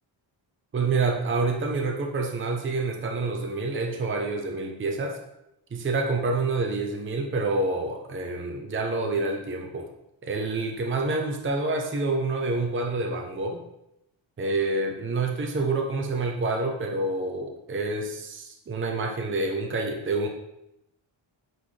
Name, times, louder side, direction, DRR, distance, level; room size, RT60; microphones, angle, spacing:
voice 1, 0.7-5.2 5.7-9.9 10.2-13.6 14.4-20.3, right 3 dB, 25° right, 2 dB, 0.7 m, -27 dB
9.1 x 4.0 x 3.3 m, 0.85 s
wide cardioid pair, 135°, 48 cm